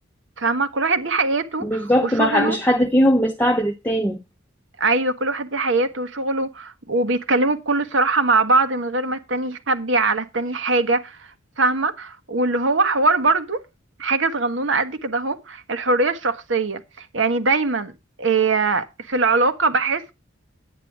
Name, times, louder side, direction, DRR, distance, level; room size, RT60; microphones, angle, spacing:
voice 1, 0.4-2.6 4.8-11.3 11.6-13.6 14.0-17.9 18.2-20.1, right 3 dB, 70° right, 1.3 m, -22 dB
voice 2, 1.6-4.2, equal, 10° left, 0.7 m, -19 dB
10.5 x 9.2 x 4.8 m
head